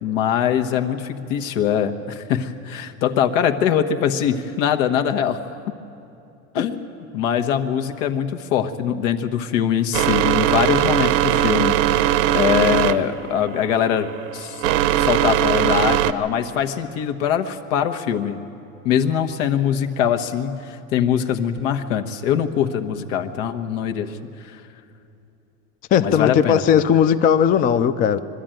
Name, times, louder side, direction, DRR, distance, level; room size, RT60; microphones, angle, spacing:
voice 1, 0.0-5.4 5.7-5.8 6.5-6.9 7.1-14.1 14.3-14.6 15.0-18.4 18.8-24.2 24.5-24.6 26.0-26.6, left 9 dB, 80° left, 6 dB, 1.3 m, -22 dB
sound 1, 9.9-16.1, right 12 dB, 80° right, 0.9 m, -20 dB
voice 2, 25.9-28.2, left 8 dB, 25° left, 10 dB, 0.4 m, -17 dB
23.0 x 13.0 x 9.0 m, 2.8 s
cardioid pair, 155°, 37 cm